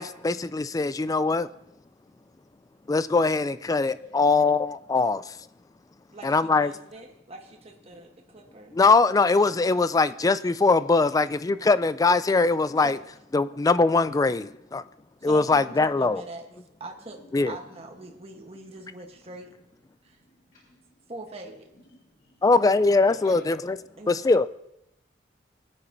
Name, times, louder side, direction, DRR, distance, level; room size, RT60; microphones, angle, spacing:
voice 1, 0.0-1.5 2.9-5.2 6.2-6.7 8.7-13.0 13.3-14.8 15.2-16.2 17.3-17.6 22.4-23.8 24.1-24.5, left 3 dB, 20° left, 0.3 m, -22 dB
voice 2, 6.1-8.8 12.8-12.9 15.2-16.5 16.8-19.5 20.0-20.2 21.1-21.7 24.0-24.3, right 2 dB, 35° right, 1.1 m, -43 dB
voice 3, 20.2-20.9 21.9-22.4 23.1-23.4, left 2 dB, 45° left, 1.8 m, -45 dB
20.0 x 9.8 x 2.7 m
head